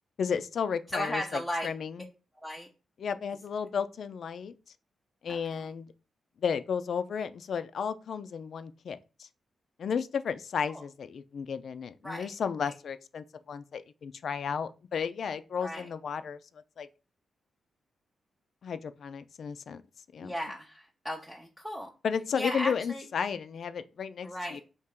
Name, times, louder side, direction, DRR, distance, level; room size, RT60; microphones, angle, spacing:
voice 1, 0.2-2.0 3.0-4.5 5.2-5.9 6.4-9.3 9.8-16.4 16.8-16.9 18.6-19.8 20.1-20.3 22.0-24.6, left 6 dB, 65° left, 0.3 m, -33 dB
voice 2, 0.9-1.7 2.4-2.7 5.3-5.6 10.7-10.8 12.0-12.3 15.6-15.9 20.2-21.9 22.4-23.0 24.2-24.6, equal, 5° right, 0.5 m, -36 dB
4.3 x 2.9 x 3.6 m
cardioid pair, 110°, 0 cm